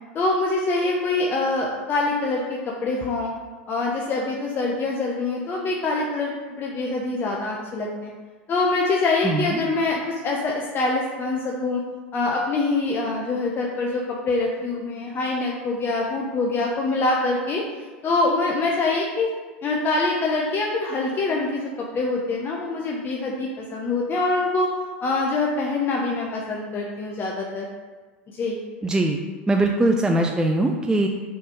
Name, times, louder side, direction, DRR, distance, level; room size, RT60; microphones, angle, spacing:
voice 1, 0.1-3.3 3.7-6.3 6.6-8.1 8.5-11.8 12.1-17.6 18.0-19.3 19.6-24.7 25.0-27.7 28.3-28.6, left 3 dB, 35° left, -2 dB, 0.8 m, -24 dB
voice 2, 9.2-9.6 28.8-29.2 29.5-31.1, right 2 dB, 10° right, 2 dB, 0.5 m, -21 dB
6.2 x 3.4 x 4.6 m, 1.4 s
hypercardioid pair, 85°, 6 cm